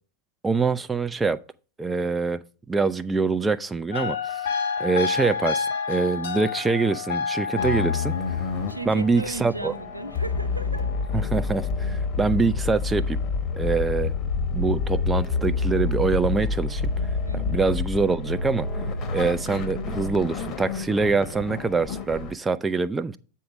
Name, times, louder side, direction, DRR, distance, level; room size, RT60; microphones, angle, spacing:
voice 1, 0.4-1.4 1.8-2.4 2.7-4.3 4.8-8.1 8.9-9.7 11.1-13.2 13.6-14.1 14.5-16.8 17.3-18.7 19.1-23.2, right 4 dB, 10° right, 0.3 m, -24 dB
sound 1, 3.9-11.1 13.5-13.8, left 5 dB, 60° left, 1.4 m, -30 dB
sound 2, 7.6-22.3, left 5 dB, 30° left, 1.1 m, -29 dB
voice 2, 8.7-10.9 17.2-17.7, right 2 dB, 85° right, 0.7 m, -36 dB
sound 3, 14.3-20.3, right 1 dB, 85° left, 0.9 m, -33 dB
8.6 x 4.6 x 5.0 m
figure-of-eight pair, 90°, 0 cm